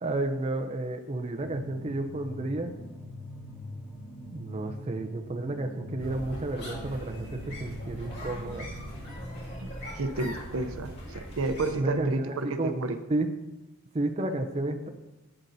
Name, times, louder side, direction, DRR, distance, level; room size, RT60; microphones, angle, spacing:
voice 1, 0.0-2.8 4.3-8.7 11.7-12.7 13.1-13.3 13.9-14.9, right 2 dB, 30° right, 4 dB, 0.5 m, -31 dB
sound 1, 1.4-9.0, left 1 dB, 5° left, 2.8 m, -43 dB
sound 2, 6.0-11.7, equal, 50° left, 2.2 m, -40 dB
voice 2, 9.6-13.0, right 3 dB, 70° right, 9 dB, 0.6 m, -31 dB
11.5 x 8.8 x 2.7 m, 1.1 s
head